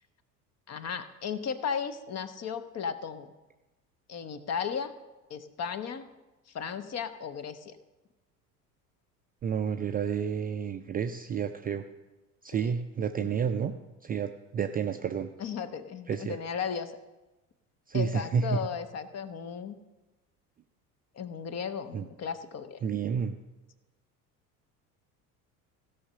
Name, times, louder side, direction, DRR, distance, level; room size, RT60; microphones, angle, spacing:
voice 1, 0.7-3.3 4.1-5.0 5.3-6.1 6.5-7.8 12.6-12.7 13.2-13.3 15.4-17.0 17.9-19.8 21.1-22.8, left 7 dB, 35° left, 12 dB, 0.8 m, -35 dB
voice 2, 9.4-11.9 12.4-13.7 14.0-15.3 16.1-16.4 17.9-18.6 21.9-22.0 22.8-23.4, right 7 dB, 20° right, 7 dB, 0.4 m, -30 dB
15.5 x 5.7 x 6.3 m, 1.1 s
figure-of-eight pair, 65°, 47 cm